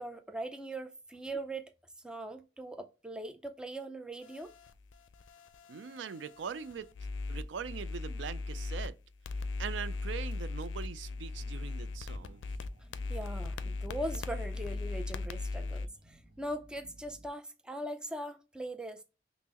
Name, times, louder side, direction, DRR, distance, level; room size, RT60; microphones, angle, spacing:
voice 1, 0.0-1.7 2.0-4.5 13.1-19.0, right 1 dB, 5° right, 0.4 m, -40 dB
sound 1, 4.2-8.9 9.2-15.9, left 3 dB, 85° left, 0.4 m, -38 dB
voice 2, 5.7-6.9 7.3-8.9 9.6-12.4, right 7 dB, 75° right, 0.4 m, -41 dB
sound 2, 11.1-17.3, equal, 55° right, 0.9 m, -59 dB
5.4 x 2.0 x 2.8 m
head